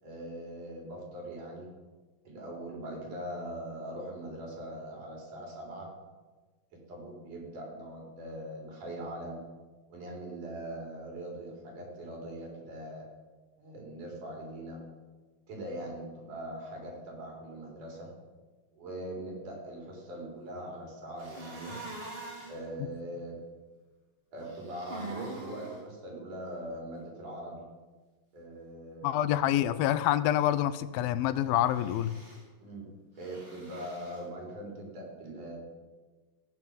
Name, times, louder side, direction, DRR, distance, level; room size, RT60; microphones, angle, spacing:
voice 1, 0.0-1.7 2.2-5.9 6.7-9.4 9.9-13.0 13.6-14.8 15.5-18.1 18.7-21.8 22.5-23.4 24.3-27.7 28.3-29.3 32.6-32.9 33.2-35.6, right 1 dB, 50° right, -1 dB, 5.9 m, -41 dB
sound 1, 21.2-22.6 24.4-25.8 31.7-32.4 33.2-34.2, right 2 dB, 15° right, 3.1 m, -44 dB
voice 2, 29.0-32.1, left 12 dB, 75° left, 14 dB, 2.4 m, -27 dB
15.5 x 10.5 x 8.3 m, 1.3 s
omnidirectional pair, 4.6 m